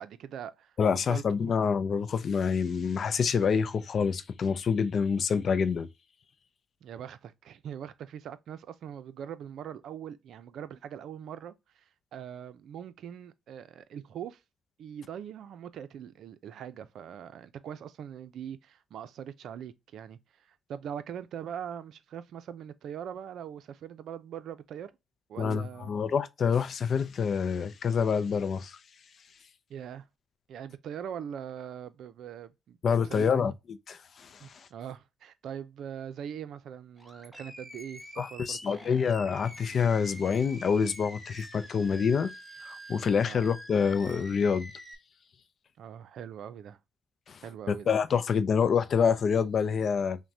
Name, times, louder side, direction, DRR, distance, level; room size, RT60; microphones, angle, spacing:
voice 1, 0.0-0.7 1.1-1.5 6.8-11.8 12.1-14.4 14.8-24.9 25.3-25.9 29.7-30.1 30.5-33.5 34.4-38.8 43.2-43.4 45.8-46.8 47.4-48.0, right 9 dB, 70° right, 0.5 m, -42 dB
voice 2, 0.8-5.9 25.4-28.8 32.8-33.5 33.9-34.3 38.2-42.3 42.6-44.7 47.3-47.4 47.7-50.2, left 6 dB, 55° left, 0.4 m, -27 dB
Animal, 37.0-44.9, equal, ahead, 0.9 m, -47 dB
5.8 x 2.2 x 2.7 m
cardioid pair, 90°, 0 cm